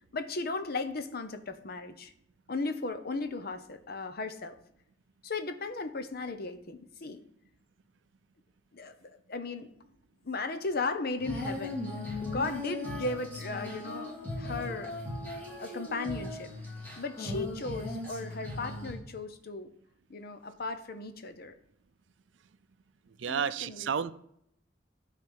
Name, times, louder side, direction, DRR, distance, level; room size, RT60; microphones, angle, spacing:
voice 1, 0.1-2.1 2.5-4.6 5.2-7.2 8.7-9.7 10.2-11.9 12.2-14.9 15.6-16.5 17.0-19.7 20.1-21.5 23.3-23.9, left 3 dB, 55° left, 0.8 m, -36 dB
Female singing, 11.2-19.0, left 1 dB, 10° left, 2.9 m, -38 dB
voice 2, 23.2-24.1, right 7 dB, 75° right, 0.5 m, -31 dB
12.0 x 4.2 x 6.2 m
head